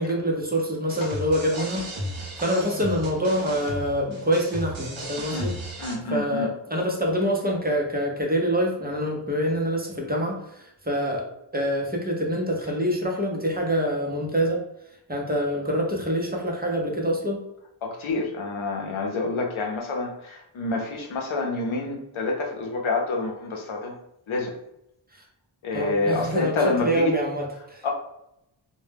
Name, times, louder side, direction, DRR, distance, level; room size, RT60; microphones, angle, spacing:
voice 1, 0.0-5.5 6.1-11.3 11.5-14.6 15.1-17.4 25.1-25.2 25.7-27.9, equal, 20° right, -1 dB, 0.5 m, -26 dB
sound 1, 0.9-6.0, equal, 75° right, 0.7 m, -35 dB
voice 2, 5.8-6.5 17.8-23.9 24.3-24.6 25.6-27.1 27.8-27.9, left 3 dB, 85° left, 1 dB, 0.6 m, -27 dB
2.1 x 2.1 x 3.2 m, 0.82 s
wide cardioid pair, 70°, 47 cm